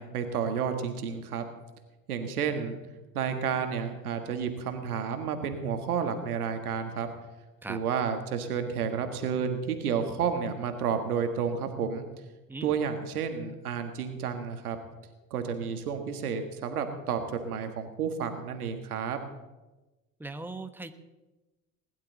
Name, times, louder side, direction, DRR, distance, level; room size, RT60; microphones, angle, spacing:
voice 1, 0.0-1.4 2.1-2.8 3.1-7.1 7.7-12.1 12.6-14.8 15.3-19.2, right 6 dB, 85° right, 7 dB, 1.8 m, -31 dB
voice 2, 20.2-20.9, right 2 dB, 5° right, 8 dB, 1.2 m, -39 dB
20.0 x 11.5 x 4.0 m, 1.1 s
hypercardioid pair, 70°, 43 cm